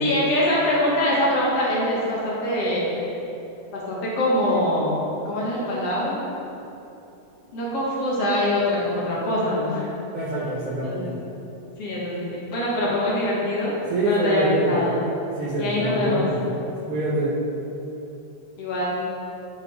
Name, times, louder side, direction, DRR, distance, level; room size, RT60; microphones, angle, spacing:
voice 1, 0.0-3.0 3.7-5.0 5.3-6.2 7.5-9.9 10.8-11.1 11.8-13.7 14.1-15.0 15.6-16.3 18.6-19.0, left 1 dB, 60° left, -6 dB, 2.1 m, -24 dB
voice 2, 10.1-11.0 13.9-14.8 15.4-16.4 16.8-17.4, right 1 dB, 60° right, -6 dB, 1.8 m, -25 dB
11.0 x 4.1 x 5.1 m, 2.9 s
omnidirectional pair, 3.4 m